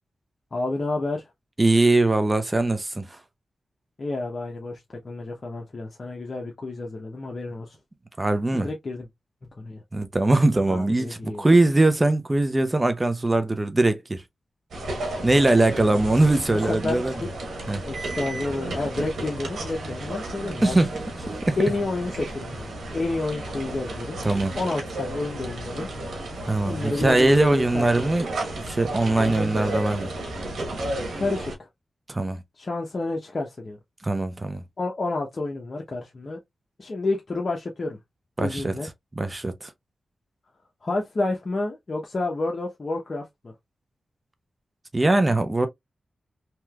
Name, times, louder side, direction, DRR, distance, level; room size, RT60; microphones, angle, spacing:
voice 1, 0.5-1.3 4.0-7.8 8.5-9.1 9.4-9.8 10.7-11.5 16.5-17.3 17.8-20.8 21.6-24.2 24.6-25.9 26.6-28.1 31.1-31.7 32.6-33.8 34.8-36.4 36.8-38.0 38.4-38.9 40.8-43.5, left 2 dB, 50° left, 0.8 m, -30 dB
voice 2, 1.6-3.2 8.2-8.7 9.9-14.2 15.2-17.1 17.7-17.8 20.6-20.9 21.3-21.6 24.2-24.5 26.4-28.3 28.5-30.1 32.1-32.4 34.0-34.6 38.4-38.7 39.2-39.7 44.9-45.7, right 2 dB, 25° right, 0.5 m, -21 dB
sound 1, 14.7-31.6, right 1 dB, 80° right, 1.2 m, -33 dB
3.2 x 2.9 x 2.3 m
cardioid pair, 50°, 0 cm